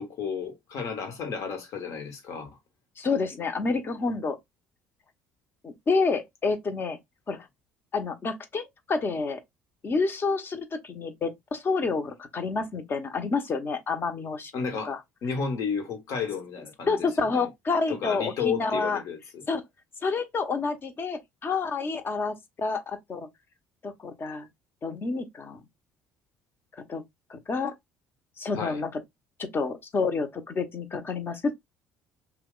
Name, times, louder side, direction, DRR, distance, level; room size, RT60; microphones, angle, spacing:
voice 1, 0.0-2.6 7.3-7.4 14.5-14.9 15.2-17.5 17.9-19.4 28.5-28.8, left 6 dB, 60° left, 1.1 m, -32 dB
voice 2, 3.0-4.4 5.6-7.0 7.3-7.4 7.9-9.4 9.8-14.5 14.8-15.0 16.9-19.0 19.5-19.6 20.0-23.3 23.8-24.5 24.8-25.6 26.9-27.0 27.3-27.7 28.4-28.9 29.4-31.5, left 4 dB, 35° left, 0.9 m, -29 dB
2.8 x 2.2 x 3.7 m
hypercardioid pair, 65°, 6 cm